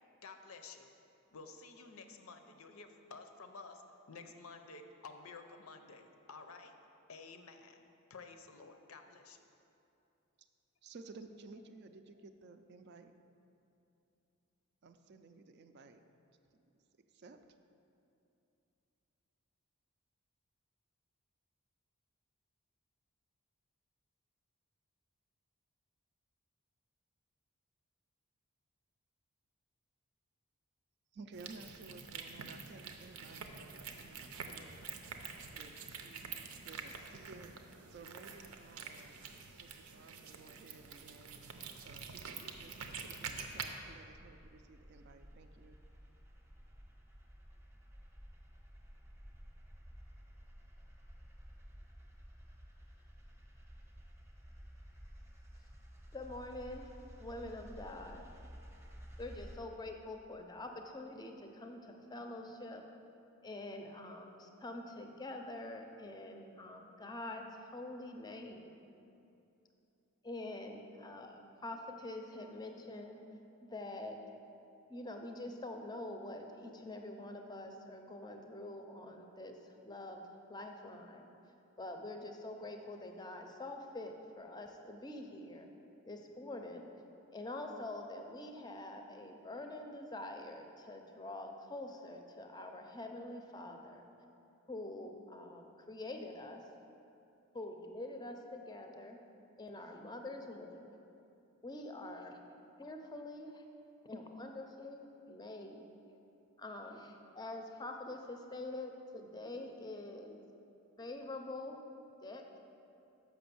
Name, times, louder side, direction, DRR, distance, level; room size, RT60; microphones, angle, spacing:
voice 1, 0.2-0.9 1.3-3.8 4.1-6.7 7.1-7.8 8.1-9.4, left 4 dB, 75° left, 6 dB, 0.6 m, -52 dB
voice 2, 10.8-13.1 14.8-16.0 17.1-17.4 31.1-34.9 35.5-37.6 37.9-39.3 39.6-41.4 41.8-45.8, right 3 dB, 50° right, 8 dB, 0.4 m, -55 dB
sound 1, 31.3-43.7, right 5 dB, 90° right, 0.6 m, -47 dB
sound 2, 43.8-59.6, equal, 10° right, 0.7 m, -54 dB
voice 3, 56.1-56.9 57.2-58.4 59.2-62.8 63.4-68.8 70.2-73.2 73.6-74.2 74.9-81.2 81.8-85.7 86.0-86.9 87.3-94.1 94.7-96.6 97.5-99.2 99.6-100.9 101.6-102.4 102.8-103.6 104.0-105.8 106.6-110.4 111.0-111.8 112.2-112.6, left 2 dB, 20° left, 4 dB, 0.5 m, -46 dB
6.1 x 5.8 x 6.9 m, 2.7 s
head